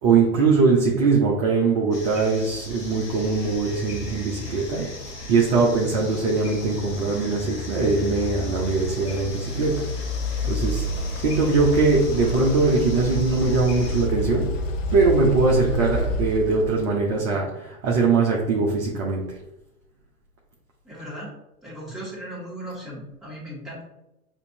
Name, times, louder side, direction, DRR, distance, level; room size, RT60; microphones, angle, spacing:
voice 1, 0.0-4.9 5.3-9.9 10.4-10.9 11.2-14.5 14.9-19.4, right 4 dB, 20° right, -2 dB, 0.5 m, -21 dB
sound 1, 1.9-14.1, left 2 dB, 90° left, 1.3 m, -40 dB
sound 2, 2.7-17.1, equal, 55° left, 0.8 m, -30 dB
voice 2, 20.8-21.3 21.6-23.8, right 1 dB, ahead, -8 dB, 1.6 m, -37 dB
6.6 x 2.6 x 2.7 m, 0.91 s
hypercardioid pair, 115°, 46 cm